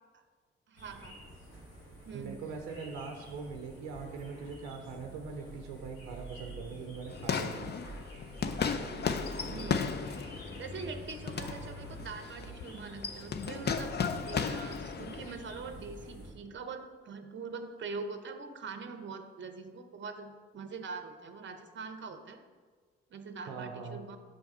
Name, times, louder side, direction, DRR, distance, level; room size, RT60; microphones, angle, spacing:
voice 1, 0.7-1.2 2.0-2.5 9.5-10.0 10.6-14.0 14.2-22.4 23.1-24.2, right 4 dB, 40° right, 8 dB, 0.7 m, -43 dB
sound 1, 0.8-16.3, right 1 dB, 85° left, 1.6 m, -48 dB
voice 2, 2.1-7.8 8.2-8.4 23.5-24.0, right 5 dB, 75° right, 4 dB, 0.6 m, -42 dB
sound 2, 7.1-15.3, left 6 dB, 35° left, 0.5 m, -35 dB
6.3 x 3.5 x 5.3 m, 1.5 s
hypercardioid pair, 40°, 30 cm